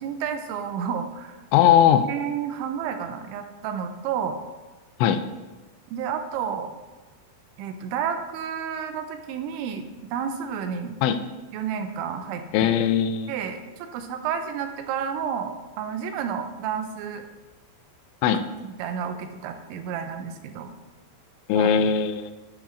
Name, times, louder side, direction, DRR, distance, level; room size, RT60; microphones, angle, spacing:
voice 1, 0.0-1.4 1.9-4.4 5.9-6.7 7.6-11.0 11.5-12.7 13.3-17.3 18.6-20.7 21.5-21.7, right 7 dB, 85° right, 7 dB, 3.0 m, -31 dB
voice 2, 1.5-2.1 5.0-5.2 11.0-11.2 12.5-13.3 18.2-18.4 21.5-22.3, left 9 dB, 85° left, 9 dB, 2.9 m, -19 dB
10.0 x 5.8 x 3.7 m, 1.2 s
omnidirectional pair, 5.4 m